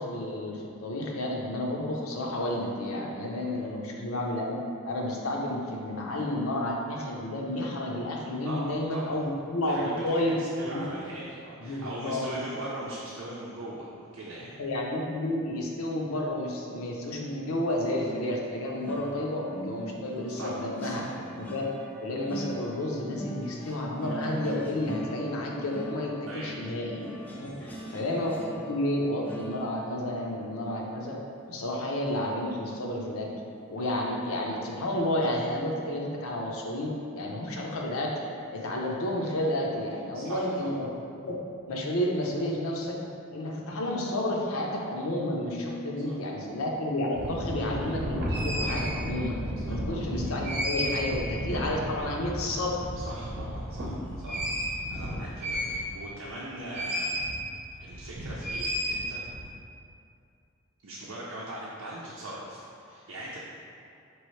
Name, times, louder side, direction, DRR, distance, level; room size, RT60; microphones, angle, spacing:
voice 1, 0.0-4.6 4.8-10.3 10.6-10.9 11.6-12.4 14.6-21.0 21.4-21.7 22.0-27.1 27.4-28.3 28.7-31.2 31.5-33.3 33.7-38.1 38.5-40.9 41.1-41.4 41.7-43.0 43.3-49.4 49.7-52.9, left 1 dB, 80° left, -1 dB, 0.7 m, -31 dB
voice 2, 8.4-9.1 9.7-14.6 20.3-21.0 26.3-26.6 27.4-27.9 40.1-40.5 46.1-46.2 49.7-49.8 52.9-57.2 57.8-59.2 60.8-63.4, right 1 dB, 85° right, -6 dB, 0.6 m, -40 dB
sound 1, 18.0-33.1 33.5-33.8 34.1-34.3, right 1 dB, 10° left, 0.3 m, -42 dB
sound 2, 47.1-56.2 56.7-57.3 57.6-59.4, equal, 50° right, 0.7 m, -32 dB
5.2 x 3.0 x 3.1 m, 2.5 s
head